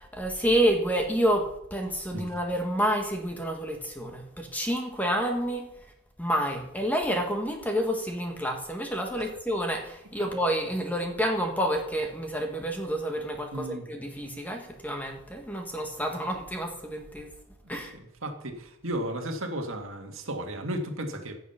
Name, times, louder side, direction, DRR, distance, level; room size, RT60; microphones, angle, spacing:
voice 1, 0.0-5.7 6.2-17.3 17.7-17.9, equal, 5° left, 3 dB, 1.4 m, -29 dB
voice 2, 13.5-13.8 18.2-21.3, right 1 dB, 65° right, 4 dB, 1.9 m, -34 dB
16.0 x 7.5 x 5.7 m, 0.82 s
head